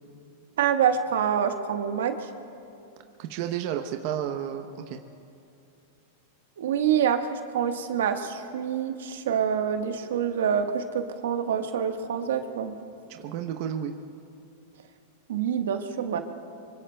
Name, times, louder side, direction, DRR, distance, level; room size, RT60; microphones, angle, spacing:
voice 1, 0.6-2.3 6.6-12.7 15.3-16.2, right 8 dB, 85° right, 6 dB, 1.3 m, -26 dB
voice 2, 3.2-5.0 13.1-13.9, right 9 dB, 55° right, 5 dB, 0.8 m, -32 dB
25.5 x 24.5 x 2.3 m, 2.7 s
hypercardioid pair, 125°, 0 cm